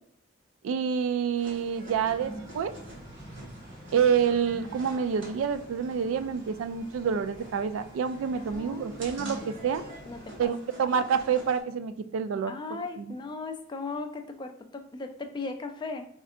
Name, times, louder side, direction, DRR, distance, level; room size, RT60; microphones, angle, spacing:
voice 1, 0.6-2.7 3.9-9.8 10.4-12.5, right 7 dB, 85° right, 12 dB, 0.3 m, -27 dB
sound 1, 1.4-11.6, right 1 dB, 65° right, 1.0 m, -46 dB
Kerkklok Sint-Kruis-Winkel, 1.9-10.5, equal, 20° right, 1.2 m, -49 dB
voice 2, 8.3-9.0 10.1-10.5 12.4-16.1, left 3 dB, 20° left, 6 dB, 0.3 m, -37 dB
4.2 x 2.6 x 2.4 m, 0.66 s
head